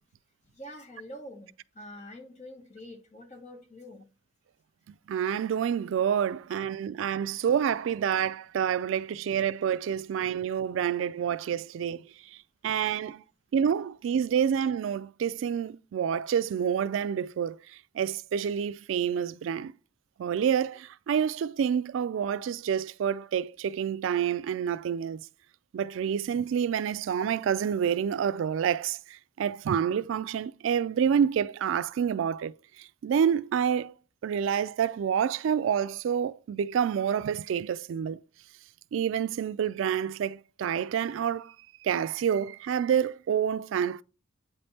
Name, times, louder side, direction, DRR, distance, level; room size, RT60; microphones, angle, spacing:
voice 1, 0.5-4.0, left 1 dB, 35° left, 1.2 m, -46 dB
voice 2, 5.1-12.1 12.6-13.2 13.5-17.6 17.9-19.7 20.2-25.2 25.7-33.9 34.2-38.2 38.9-41.5 41.8-44.0, right 8 dB, 85° right, 0.3 m, -28 dB
8.4 x 3.4 x 4.1 m
head